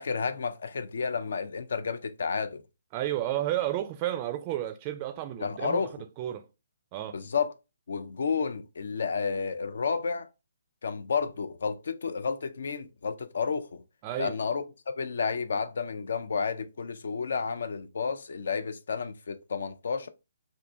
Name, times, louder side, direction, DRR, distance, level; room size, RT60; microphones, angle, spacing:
voice 1, 0.0-2.6 5.4-5.9 7.1-7.5 7.9-10.3 10.8-13.8 14.2-20.1, left 5 dB, 65° left, 0.4 m, -31 dB
voice 2, 2.9-5.9 6.2-6.4 6.9-7.2 14.0-14.3, right 13 dB, 30° right, 0.4 m, -31 dB
2.6 x 2.6 x 3.3 m
figure-of-eight pair, 135°, 0 cm